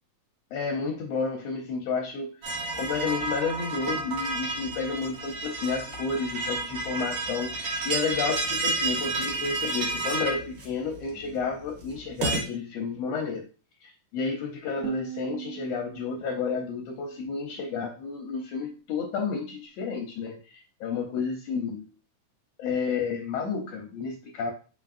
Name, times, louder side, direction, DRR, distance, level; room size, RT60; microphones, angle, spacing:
voice 1, 0.5-2.3 2.8-13.5 13.8-20.5 20.8-21.9 22.6-24.5, left 5 dB, 75° left, 2 dB, 1.5 m, -31 dB
sound 1, 2.4-12.4, right 3 dB, 55° right, 2.0 m, -31 dB
sound 2, 14.8-17.8, right 19 dB, 85° right, 2.1 m, -40 dB
5.0 x 4.1 x 2.5 m, 0.35 s
omnidirectional pair, 3.7 m